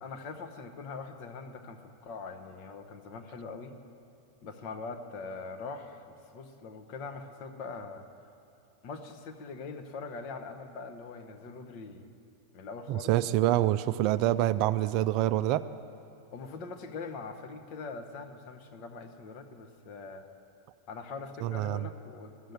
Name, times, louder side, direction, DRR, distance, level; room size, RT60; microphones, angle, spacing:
voice 1, 0.0-3.8 4.4-8.1 8.8-12.1 12.5-13.6 16.3-20.3 20.9-22.5, left 4 dB, 40° left, 5 dB, 1.0 m, -42 dB
voice 2, 12.9-15.6 21.4-21.9, right 14 dB, 45° right, 14 dB, 0.3 m, -26 dB
13.0 x 7.7 x 9.5 m, 2.6 s
figure-of-eight pair, 90°, 0 cm